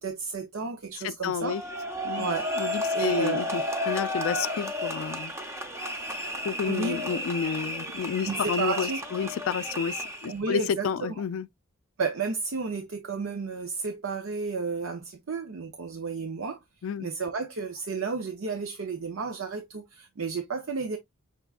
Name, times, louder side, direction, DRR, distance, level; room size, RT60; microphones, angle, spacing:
voice 1, 0.0-1.6 2.2-2.5 2.9-3.5 6.7-7.2 8.2-9.0 10.2-11.2 12.0-16.6 17.0-21.0, right 4 dB, 65° right, 0.6 m, -32 dB
voice 2, 1.0-1.6 2.0-2.3 2.6-5.3 6.4-11.5 16.8-17.1, left 7 dB, 65° left, 0.3 m, -30 dB
sound 1, 1.4-10.4, left 1 dB, 15° right, 0.7 m, -32 dB
5.9 x 3.5 x 2.3 m
head